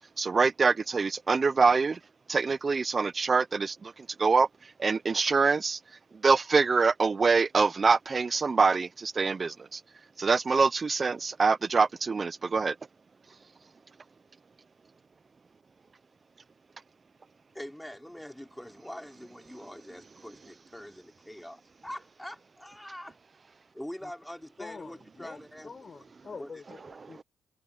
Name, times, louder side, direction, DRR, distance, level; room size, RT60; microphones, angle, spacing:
voice 1, 0.2-2.0 2.3-5.8 6.2-9.8 10.2-12.8, right 4 dB, 35° right, 0.6 m, -25 dB
voice 2, 17.5-23.2 23.7-25.7 26.0-26.1 26.4-26.5, left 1 dB, 5° left, 3.7 m, -44 dB
voice 3, 24.6-27.2, left 4 dB, 35° left, 6.4 m, -46 dB
cardioid pair, 90°, 0 cm